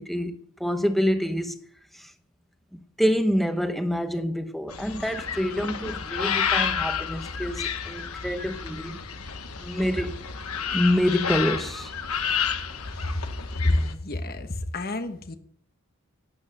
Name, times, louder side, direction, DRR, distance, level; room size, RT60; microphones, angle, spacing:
voice 1, 0.0-1.6 1.9-2.1 2.7-9.0 9.6-10.2 10.7-11.9, equal, ahead, 0.9 m, -26 dB
sound 1, 4.7-13.9, left 7 dB, 85° left, 1.2 m, -30 dB
voice 2, 13.6-15.4, left 1 dB, 45° left, 1.2 m, -28 dB
12.0 x 9.7 x 6.6 m
head